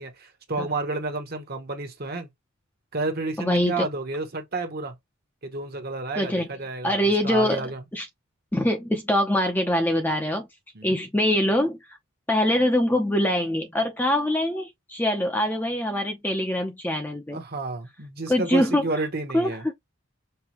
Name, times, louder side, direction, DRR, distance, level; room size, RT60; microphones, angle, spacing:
voice 1, 0.0-2.3 2.9-4.9 5.4-7.8 10.7-11.0 17.3-19.6, right 2 dB, 45° right, 1.0 m, -31 dB
voice 2, 3.4-3.9 6.1-6.5 6.8-7.7 7.9-8.1 8.5-10.5 10.8-11.8 12.3-17.4 18.3-18.8 19.3-19.7, left 1 dB, 10° left, 0.6 m, -23 dB
5.5 x 2.3 x 2.9 m
head